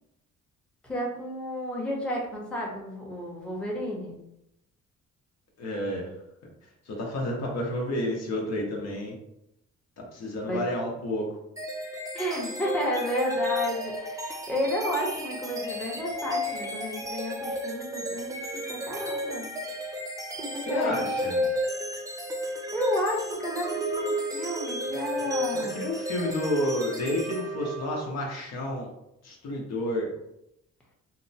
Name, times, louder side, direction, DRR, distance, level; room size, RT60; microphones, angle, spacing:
voice 1, 0.8-4.2 10.5-10.6 12.1-19.5 20.3-21.5 22.4-25.9, equal, 5° left, -3 dB, 0.7 m, -32 dB
voice 2, 5.6-6.1 6.9-9.1 10.0-11.3 20.7-21.4 25.2-28.9 29.2-30.1, left 1 dB, 60° left, -1 dB, 0.8 m, -30 dB
sound 1, 11.6-28.2, equal, 10° right, 0.4 m, -32 dB
2.8 x 2.1 x 2.6 m, 0.81 s
cardioid pair, 90°, 30 cm